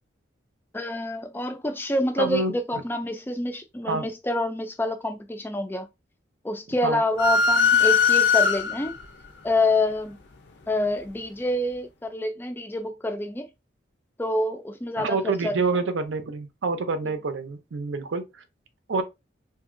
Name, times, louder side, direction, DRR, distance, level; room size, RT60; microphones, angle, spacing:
voice 1, 0.7-5.9 6.4-8.9 9.4-10.2 10.7-13.5 14.2-15.5, left 1 dB, 10° left, 0.3 m, -27 dB
voice 2, 2.2-2.8 3.8-4.1 6.8-7.0 15.0-18.4 18.9-19.0, right 3 dB, 80° right, 0.5 m, -27 dB
sound 1, 7.2-9.0, left 6 dB, 70° left, 0.6 m, -20 dB
2.9 x 2.6 x 2.5 m
head